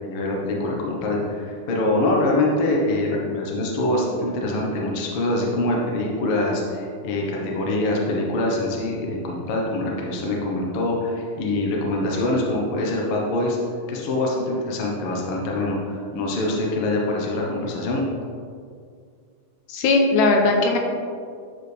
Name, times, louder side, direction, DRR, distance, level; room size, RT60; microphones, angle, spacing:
voice 1, 0.0-13.6 13.9-18.0, left 2 dB, 60° left, -2 dB, 1.7 m, -24 dB
voice 2, 19.7-20.8, left 3 dB, 85° left, 2 dB, 2.1 m, -18 dB
9.6 x 4.9 x 3.3 m, 2.2 s
omnidirectional pair, 3.4 m